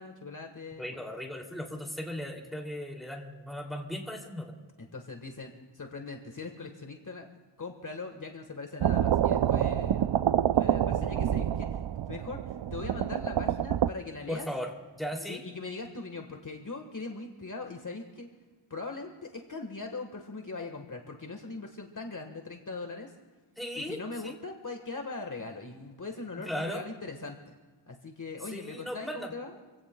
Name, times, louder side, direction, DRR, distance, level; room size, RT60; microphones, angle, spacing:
voice 1, 0.0-1.0 4.8-7.3 7.6-10.1 10.5-14.5 15.1-18.3 18.7-23.1 23.7-27.5 27.9-29.5, left 3 dB, 40° left, 3 dB, 1.5 m, -41 dB
voice 2, 0.8-4.5 14.3-15.4 23.6-24.4 26.4-26.8 28.5-29.3, equal, ahead, 0 dB, 2.6 m, -37 dB
sound 1, 8.8-13.9, right 10 dB, 65° right, 0.5 m, -27 dB
27.0 x 16.5 x 2.3 m, 1.3 s
wide cardioid pair, 75°, 47 cm